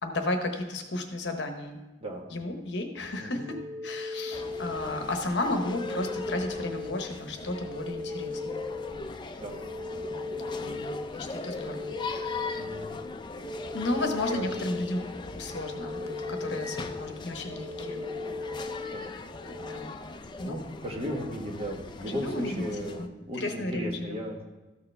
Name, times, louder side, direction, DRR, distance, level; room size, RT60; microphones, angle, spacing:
voice 1, 0.0-1.8 2.3-8.6 10.6-12.6 13.7-15.1 15.3-18.1 19.6-19.9 20.4-20.5 22.0-22.6 23.0-23.1 23.4-24.2, left 2 dB, 65° left, 5 dB, 1.0 m, -33 dB
sound 1, 3.1-19.8, left 3 dB, 75° right, 1.6 m, -38 dB
sound 2, 4.3-23.1, left 3 dB, 25° left, 0.4 m, -40 dB
voice 2, 12.5-12.8 14.3-14.4 18.9-19.1 20.4-24.6, equal, 30° right, 0 dB, 1.3 m, -36 dB
13.5 x 6.6 x 3.3 m, 1.1 s
head